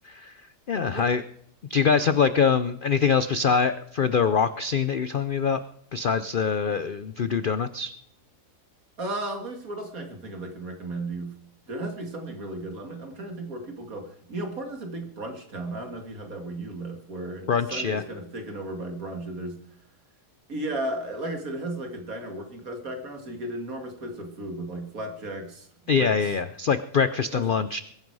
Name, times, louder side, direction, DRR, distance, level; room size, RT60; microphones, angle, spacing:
voice 1, 0.7-1.2 1.7-5.6 5.9-7.9 17.5-18.0 25.9-27.8, left 6 dB, 65° left, 12 dB, 0.5 m, -24 dB
voice 2, 9.0-11.3 11.7-19.6 20.5-25.7 26.0-26.3 27.3-27.6, right 1 dB, 60° right, 5 dB, 2.7 m, -35 dB
22.0 x 9.3 x 4.8 m, 0.68 s
omnidirectional pair, 1.7 m